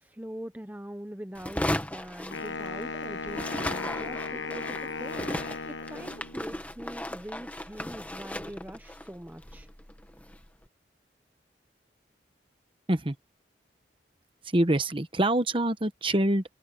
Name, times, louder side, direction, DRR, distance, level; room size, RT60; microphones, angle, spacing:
voice 1, 0.0-9.7, equal, 10° right, 0.8 m, -43 dB
sound 1, 1.3-3.0 3.3-10.5, left 1 dB, 10° left, 1.6 m, -36 dB
Wind instrument woodwind instrument, 2.3-6.5, left 4 dB, 80° left, 1.3 m, -36 dB
voice 2, 14.4-16.4, right 1 dB, 30° right, 1.1 m, -25 dB
head